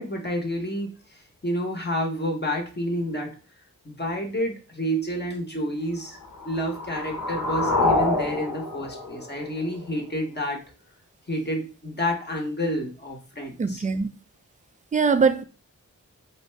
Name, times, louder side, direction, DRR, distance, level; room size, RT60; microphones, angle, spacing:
voice 1, 0.0-3.4 3.8-6.2 6.4-10.6 11.3-13.8, equal, 30° left, 0.8 m, -29 dB
sound 1, 6.2-10.2, left 2 dB, 65° left, 0.7 m, -27 dB
voice 2, 13.6-14.1 14.9-15.4, right 5 dB, 25° right, 0.3 m, -21 dB
2.6 x 2.1 x 3.2 m
cardioid pair, 40°, 34 cm